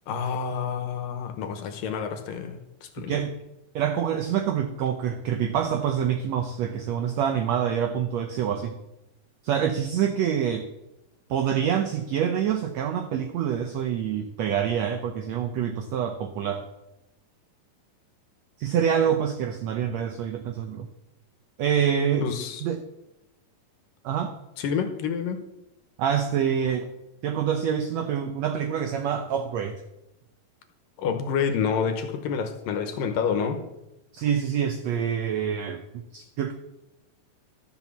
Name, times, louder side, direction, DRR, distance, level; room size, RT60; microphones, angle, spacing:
voice 1, 0.1-3.2 22.2-22.6 24.6-25.4 31.0-33.6, left 6 dB, 75° left, 7 dB, 2.6 m, -28 dB
voice 2, 3.1-3.4 3.7-8.7 9.4-10.6 11.3-16.6 18.6-20.9 21.6-22.3 22.6-22.8 24.0-24.4 26.0-26.9 27.2-29.8 34.1-35.8 36.1-36.5, right 8 dB, 90° right, 7 dB, 1.5 m, -26 dB
13.0 x 6.0 x 7.1 m, 0.92 s
omnidirectional pair, 4.0 m